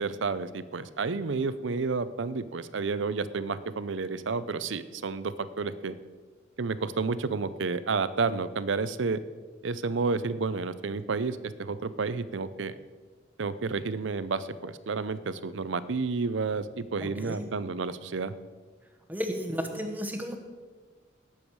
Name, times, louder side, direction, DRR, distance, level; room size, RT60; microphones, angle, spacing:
voice 1, 0.0-5.9 6.6-9.2 9.6-12.8 13.4-18.3, right 4 dB, 75° right, 14 dB, 0.6 m, -30 dB
voice 2, 17.0-17.5 19.1-20.4, equal, 10° right, 5 dB, 1.0 m, -33 dB
18.0 x 7.1 x 4.7 m, 1.4 s
head